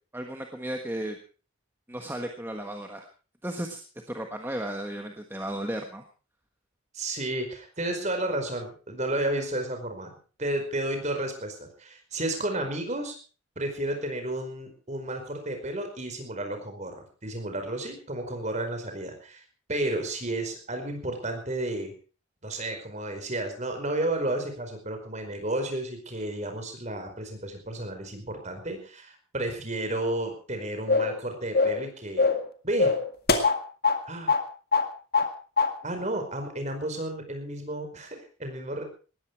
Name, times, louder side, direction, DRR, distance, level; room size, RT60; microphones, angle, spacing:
voice 1, 0.1-1.2 1.9-3.0 3.4-3.8 4.1-6.0, right 1 dB, 10° right, 3 dB, 1.4 m, -34 dB
voice 2, 6.9-10.1 10.4-13.2 13.6-19.4 19.7-21.9 22.4-32.3 32.6-32.9 34.0-34.3 35.8-38.8, right 1 dB, 35° right, 5 dB, 4.9 m, -32 dB
sound 1, 30.9-31.2 31.5-31.8 32.2-32.5 32.8-34.0 34.3-34.4 34.7-35.3 35.6-35.7, left 4 dB, 45° left, 2.0 m, -23 dB
19.0 x 14.5 x 4.7 m, 0.38 s
head